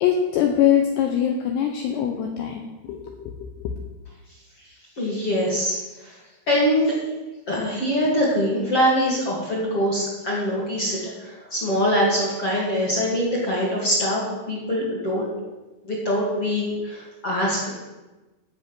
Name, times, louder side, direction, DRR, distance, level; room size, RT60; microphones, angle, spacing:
voice 1, 0.0-3.5, left 9 dB, 80° left, 2 dB, 2.5 m, -23 dB
voice 2, 5.0-6.2 6.5-6.9 7.5-14.2 14.5-15.3 15.8-17.8, equal, 40° left, -5 dB, 2.2 m, -23 dB
15.0 x 6.2 x 6.0 m, 1.1 s
omnidirectional pair, 5.7 m